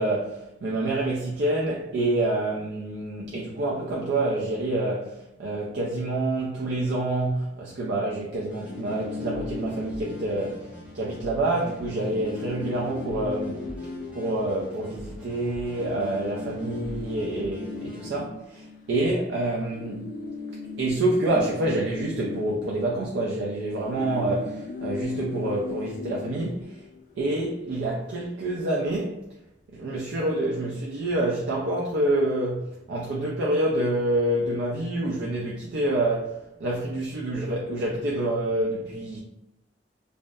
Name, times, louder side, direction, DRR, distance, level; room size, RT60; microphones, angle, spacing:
voice 1, 0.0-10.7 10.9-13.7 14.1-20.1 20.8-26.8 27.2-29.3 29.7-39.2, right 1 dB, 75° right, 0.4 m, -27 dB
sound 1, 8.5-11.1 11.4-11.5 11.8-15.2 15.7-19.3 19.6-27.2, left 3 dB, 50° left, 0.3 m, -38 dB
sound 2, 8.5-18.2, equal, 5° right, 0.5 m, -45 dB
2.7 x 2.1 x 2.2 m
head